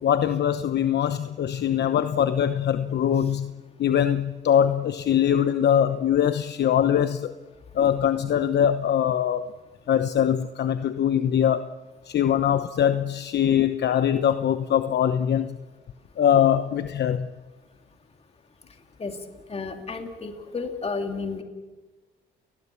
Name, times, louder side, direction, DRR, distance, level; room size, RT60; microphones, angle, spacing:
voice 1, 0.0-3.5 3.8-7.3 7.7-9.4 9.9-11.7 12.1-15.6 16.2-17.3, left 9 dB, 60° left, 0.9 m, -22 dB
voice 2, 19.5-21.4, left 4 dB, 30° left, 2.8 m, -32 dB
30.0 x 20.0 x 7.0 m
cardioid pair, 90°, 20 cm